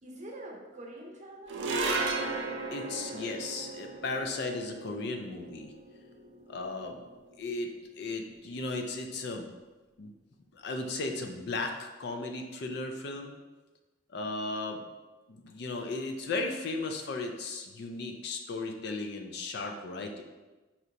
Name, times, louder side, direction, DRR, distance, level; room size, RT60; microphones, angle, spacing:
voice 1, 0.0-2.4 2.7-3.4 8.3-8.4, right 1 dB, 40° right, -1 dB, 0.6 m, -47 dB
sound 1, 1.5-8.0, right 3 dB, 85° right, 0.5 m, -36 dB
voice 2, 2.7-5.7 6.5-7.0 7.4-7.7 8.0-9.5 10.0-10.1 10.5-13.3 14.1-14.8 15.3-20.2, left 3 dB, 60° left, 4 dB, 0.4 m, -36 dB
4.3 x 2.8 x 2.5 m, 1.2 s
head